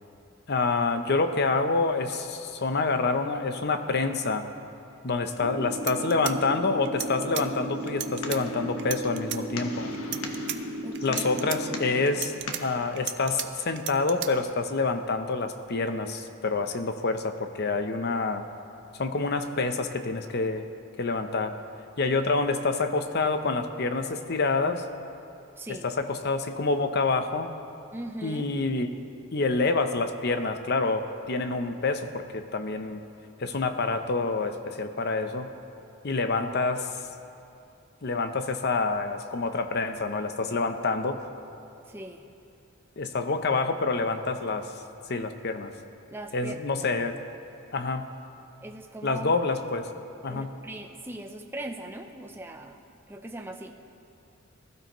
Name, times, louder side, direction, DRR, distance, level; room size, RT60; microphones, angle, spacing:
voice 1, 0.5-4.5 5.0-9.9 11.0-12.3 12.6-18.4 19.0-20.7 21.0-21.6 22.0-24.9 25.7-27.5 28.2-28.9 29.3-33.0 33.4-35.5 36.0-36.9 38.0-41.2 43.0-44.7 45.1-45.7 46.3-47.2 47.7-48.1 49.0-49.9 50.2-50.6, left 3 dB, 50° left, 8 dB, 0.7 m, -27 dB
sound 1, 5.4-11.9, equal, 90° right, 0.9 m, -35 dB
sound 2, 5.8-7.5 7.9-8.4 8.8-9.4 9.9-10.6 11.0-11.6 12.1-13.5 13.8-14.3, right 13 dB, 55° right, 0.5 m, -34 dB
sound 3, 7.7-12.8, left 3 dB, 85° left, 1.1 m, -41 dB
voice 2, 10.8-11.5 25.6-25.9 27.9-28.5 41.9-42.3 46.1-46.6 48.6-49.4 50.3-52.8 53.1-53.8, right 1 dB, 10° right, 4 dB, 0.6 m, -40 dB
20.0 x 12.5 x 3.1 m, 2.7 s
head